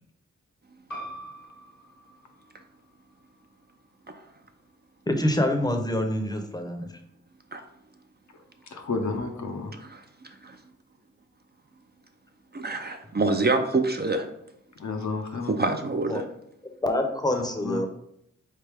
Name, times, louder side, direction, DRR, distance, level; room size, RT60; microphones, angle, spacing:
sound 1, 0.9-6.1, right 1 dB, 85° left, 1.6 m, -46 dB
voice 1, 5.1-6.9 16.1-16.2 16.8-17.9, left 1 dB, 15° left, 5 dB, 0.7 m, -26 dB
voice 2, 8.7-9.7 14.8-15.5 17.3-17.9, left 4 dB, 65° left, 4 dB, 0.7 m, -31 dB
voice 3, 12.5-14.3 15.5-16.3, right 3 dB, 35° right, 6 dB, 0.5 m, -26 dB
4.0 x 3.3 x 3.4 m, 0.74 s
cardioid pair, 55°, 30 cm